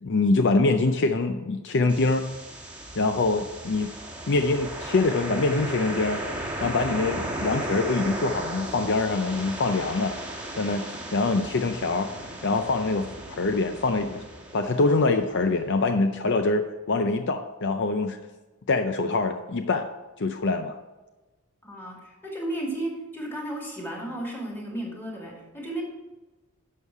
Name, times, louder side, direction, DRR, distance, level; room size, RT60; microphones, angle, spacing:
voice 1, 0.0-2.3 3.0-3.9 4.3-6.2 6.6-10.1 10.6-10.9 11.1-12.1 12.4-14.2 14.5-18.2 18.7-19.9 20.2-20.8, left 3 dB, 55° left, 7 dB, 0.5 m, -24 dB
sound 1, 1.9-15.8, right 1 dB, 5° right, 1.4 m, -36 dB
voice 2, 21.6-25.8, right 1 dB, 10° left, -2 dB, 2.4 m, -34 dB
11.0 x 6.5 x 4.7 m, 1.1 s
head